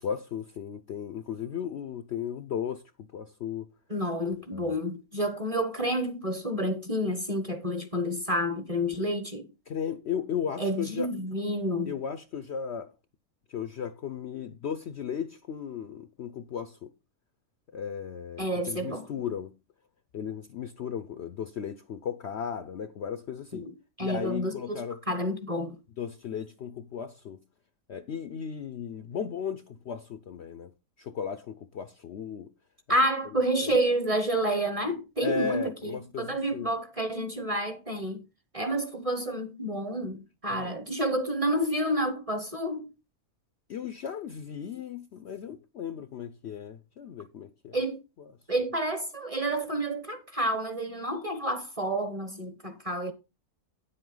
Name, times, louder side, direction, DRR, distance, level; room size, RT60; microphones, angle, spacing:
voice 1, 0.0-3.7 4.5-4.7 9.7-11.1 11.9-12.9 13.5-16.9 17.7-19.6 20.1-23.7 24.0-25.0 26.0-27.4 27.9-30.7 31.0-32.5 33.6-33.7 35.2-36.7 40.5-40.7 43.7-47.8, left 7 dB, 60° left, 0.8 m, -35 dB
voice 2, 3.9-9.5 10.6-11.9 18.4-19.1 23.5-23.7 24.0-25.7 32.9-38.2 38.5-42.9 47.7-48.0 48.5-53.1, right 1 dB, 25° right, 1.0 m, -29 dB
9.9 x 7.8 x 3.9 m
omnidirectional pair, 1.6 m